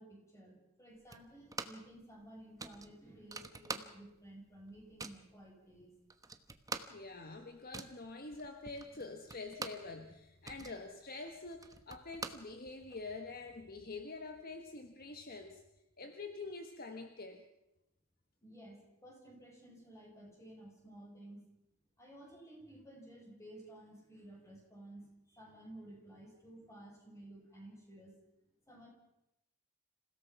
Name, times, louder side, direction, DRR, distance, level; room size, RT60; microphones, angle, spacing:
voice 1, 0.0-5.9 6.8-7.0 18.4-21.5 22.0-28.2 28.7-28.9, right 1 dB, 15° left, 0 dB, 6.5 m, -54 dB
sound 1, 1.1-1.9 2.2-2.3 2.6-4.3 4.5-5.3 5.8-5.9 6.1-9.9 10.2-13.0, right 3 dB, 15° right, 1.1 m, -46 dB
voice 2, 6.9-15.6 16.0-17.4, left 3 dB, 45° left, 5 dB, 1.4 m, -46 dB
27.0 x 17.0 x 5.9 m, 0.91 s
head